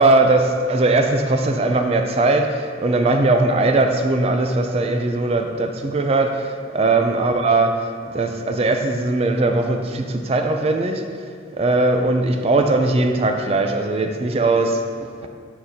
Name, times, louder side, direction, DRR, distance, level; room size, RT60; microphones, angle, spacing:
voice 1, 0.0-11.1 11.5-15.3, right 2 dB, 30° right, 5 dB, 0.4 m, -19 dB
7.5 x 6.3 x 2.7 m, 2.2 s
head